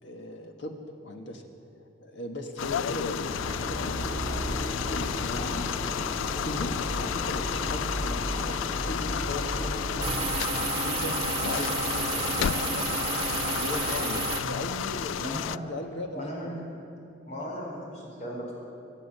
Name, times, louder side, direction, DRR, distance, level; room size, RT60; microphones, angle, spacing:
voice 1, 0.0-0.7 1.0-1.4 2.0-5.7 6.4-10.2 10.8-11.1 11.4-13.2 13.5-15.2 15.7-16.6, left 1 dB, 65° left, 3 dB, 1.7 m, -38 dB
sound 1, 2.6-15.6, left 9 dB, 85° left, 0.3 m, -32 dB
sound 2, 3.2-10.2, equal, 20° left, 1.6 m, -34 dB
sound 3, 10.0-14.4, right 4 dB, 30° right, 1.6 m, -30 dB
voice 2, 15.2-15.6 16.1-16.5 17.2-18.5, equal, 40° left, -3 dB, 4.7 m, -36 dB
24.5 x 8.3 x 6.8 m, 2.6 s
head